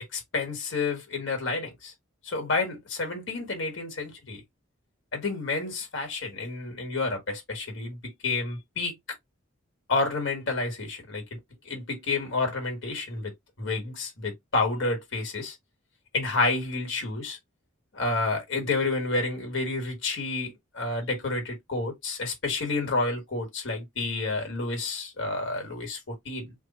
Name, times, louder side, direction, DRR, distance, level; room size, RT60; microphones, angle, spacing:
voice 1, 0.1-1.9 2.2-4.4 5.1-9.0 9.9-11.4 11.6-13.3 13.6-15.5 16.1-17.4 17.9-26.5, left 3 dB, 60° left, 1.5 m, -30 dB
3.3 x 2.1 x 4.2 m
head